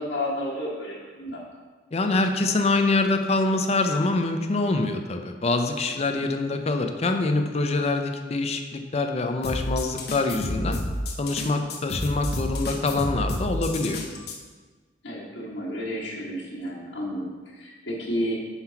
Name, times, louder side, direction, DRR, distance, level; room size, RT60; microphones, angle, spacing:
voice 1, 0.0-1.4 6.1-6.3 15.0-18.4, equal, 80° left, -6 dB, 1.6 m, -31 dB
voice 2, 1.9-10.8 11.2-14.0, left 3 dB, 35° left, 5 dB, 0.5 m, -25 dB
sound 1, 9.4-14.4, left 1 dB, 60° left, 0.9 m, -30 dB
5.7 x 4.5 x 5.7 m, 1.4 s
head